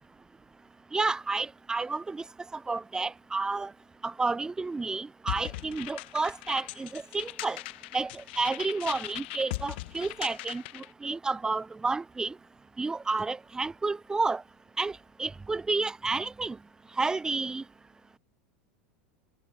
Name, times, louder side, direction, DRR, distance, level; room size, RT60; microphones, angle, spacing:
voice 1, 0.9-2.2 2.7-3.7 4.0-7.6 7.9-12.3 12.8-14.4 14.8-14.9 15.2-16.6 17.0-17.6, right 3 dB, 10° right, 0.4 m, -30 dB
sound 1, 5.3-10.9, left 21 dB, 55° left, 0.8 m, -39 dB
figure-of-eight pair, 85°, 7 cm